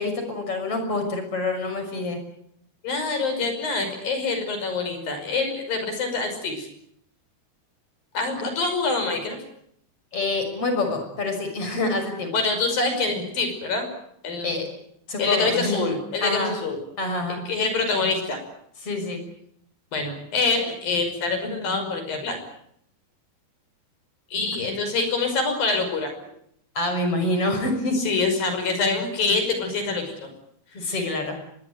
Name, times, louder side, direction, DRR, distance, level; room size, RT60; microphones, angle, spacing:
voice 1, 0.0-2.2 10.1-12.3 14.4-14.7 15.1-15.8 16.2-16.5 17.0-17.4 18.8-19.2 26.7-28.0 30.7-31.4, left 2 dB, 35° left, 6 dB, 6.8 m, -26 dB
voice 2, 2.8-6.7 8.1-9.4 12.3-13.9 14.2-14.5 15.2-16.8 17.5-18.4 19.9-22.4 24.3-26.1 27.9-30.3 30.8-31.1, left 3 dB, 65° left, 7 dB, 7.3 m, -25 dB
24.5 x 20.5 x 9.5 m, 0.72 s
omnidirectional pair, 4.5 m